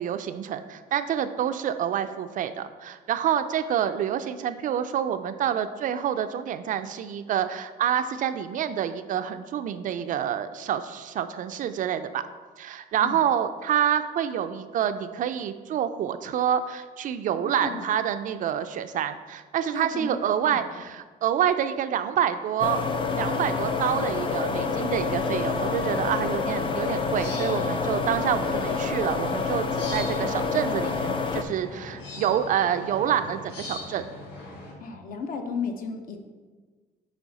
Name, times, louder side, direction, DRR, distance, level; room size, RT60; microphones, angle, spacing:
voice 1, 0.0-12.3 12.6-22.8 23.2-34.0, right 9 dB, 50° right, 10 dB, 0.4 m, -27 dB
voice 2, 17.4-17.8 19.7-20.2 20.5-20.6 34.8-36.2, left 5 dB, 55° left, 5 dB, 0.8 m, -34 dB
sound 1, 22.6-31.4, left 4 dB, 30° left, 0.5 m, -28 dB
sound 2, 24.5-34.7, left 2 dB, 80° left, 1.6 m, -41 dB
8.2 x 3.4 x 4.0 m, 1.4 s
cardioid pair, 110°, 17 cm